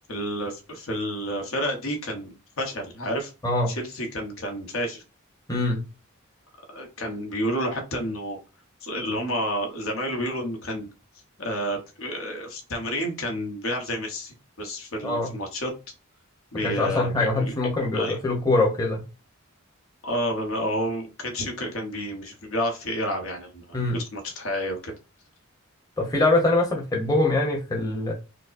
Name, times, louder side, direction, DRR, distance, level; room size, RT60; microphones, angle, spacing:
voice 1, 0.1-3.3 3.7-5.0 6.7-8.4 8.8-10.9 11.4-15.7 16.5-17.5 17.9-18.2 20.0-24.9, equal, 75° left, 3 dB, 1.0 m, -30 dB
voice 2, 3.4-3.8 5.5-5.8 15.0-15.3 16.5-19.0 23.7-24.0 26.0-28.1, left 2 dB, 20° left, -1 dB, 0.9 m, -23 dB
4.9 x 2.0 x 2.5 m, 0.30 s
head